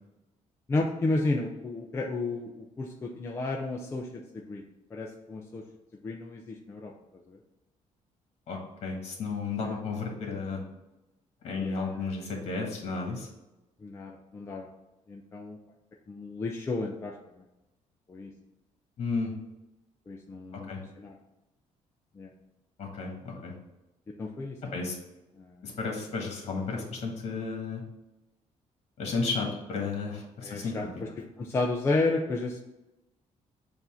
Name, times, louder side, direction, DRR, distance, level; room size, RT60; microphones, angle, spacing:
voice 1, 0.7-4.6 4.9-5.6 6.0-6.9 7.3-7.4 11.6-12.1 13.8-14.7 15.1-15.6 16.1-17.4 18.1-18.3 20.1-20.7 21.0-21.2 22.1-22.3 24.2-24.7 25.4-25.7 30.4-30.9 31.2-32.6, left 2 dB, 20° left, 0 dB, 0.5 m, -32 dB
voice 2, 8.5-10.6 11.4-13.3 19.0-19.3 20.5-20.8 22.8-23.5 24.6-25.0 25.6-27.8 29.0-30.9, left 4 dB, 50° left, 1 dB, 1.5 m, -33 dB
7.1 x 2.6 x 5.6 m, 0.97 s
cardioid pair, 165°, 13 cm